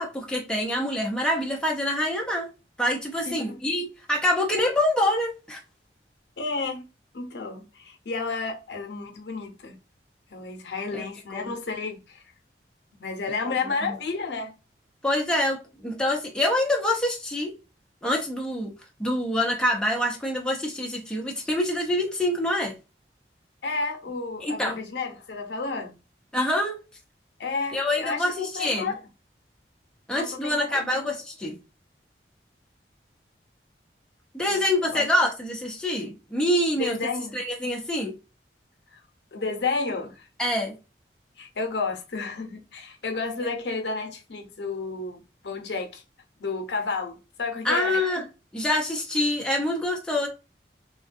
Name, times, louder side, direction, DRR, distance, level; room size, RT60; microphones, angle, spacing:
voice 1, 0.0-2.5 2.8-5.6 10.9-11.0 11.3-11.5 13.8-14.0 15.0-17.5 18.0-18.7 19.0-22.7 24.4-24.7 26.3-26.8 27.7-28.9 30.1-31.6 34.3-37.0 37.3-38.1 40.4-40.7 47.6-48.2 48.5-50.3, left 1 dB, 5° left, 0.5 m, -26 dB
voice 2, 6.4-6.8 7.1-9.8 10.3-12.2 13.0-14.5 23.6-25.9 27.4-29.0 30.1-31.1 34.5-34.6 34.9-35.1 36.8-37.4 38.9-39.0 39.3-40.3 41.4-46.0 46.4-48.2, left 4 dB, 75° left, 0.6 m, -31 dB
3.5 x 2.2 x 2.5 m
head